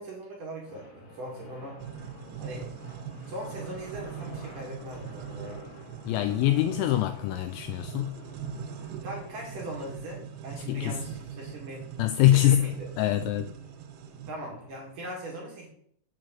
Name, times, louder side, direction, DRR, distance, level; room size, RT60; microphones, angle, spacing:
voice 1, 0.0-1.8 2.4-2.7 3.3-5.7 9.0-11.9 12.3-12.9 14.3-15.7, right 1 dB, 55° right, -2 dB, 2.8 m, -40 dB
sound 1, 0.6-14.9, left 3 dB, 60° left, 4.4 m, -51 dB
sound 2, 1.8-14.3, right 8 dB, 85° right, 3.2 m, -41 dB
voice 2, 6.1-8.2 10.7-11.0 12.0-12.7 13.0-13.5, left 13 dB, 85° left, 9 dB, 2.7 m, -24 dB
8.3 x 4.6 x 7.4 m, 0.66 s
omnidirectional pair, 5.8 m